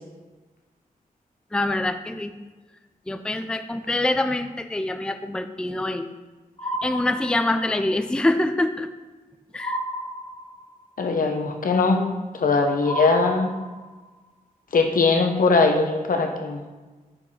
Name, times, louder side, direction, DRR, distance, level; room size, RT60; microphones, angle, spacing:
voice 1, 1.5-2.3 3.1-6.1 6.8-8.9 9.5-9.8, left 2 dB, 5° left, 9 dB, 0.4 m, -25 dB
sound 1, 6.6-7.8 9.6-10.8 12.8-14.1, right 1 dB, 35° left, 2.1 m, -32 dB
voice 2, 11.0-12.0 12.3-13.5 14.7-16.6, left 3 dB, 70° left, 4 dB, 1.0 m, -20 dB
6.3 x 5.3 x 5.6 m, 1.3 s
wide cardioid pair, 100°, 15 cm